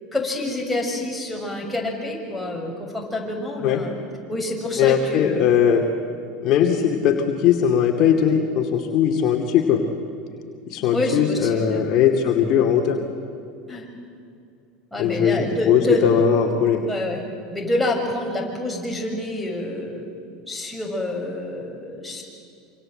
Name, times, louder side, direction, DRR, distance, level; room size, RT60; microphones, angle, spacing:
voice 1, 0.1-4.0 4.3-5.4 10.9-11.8 12.4-12.5 13.7-13.9 14.9-16.0 16.8-17.2 17.5-20.1 20.5-22.2, left 1 dB, 5° left, -1 dB, 7.2 m, -27 dB
voice 2, 4.8-5.8 6.4-9.8 10.7-13.0 15.0-16.9, left 8 dB, 50° left, 3 dB, 2.4 m, -19 dB
26.5 x 26.5 x 8.0 m, 2.4 s
hypercardioid pair, 80°, 0 cm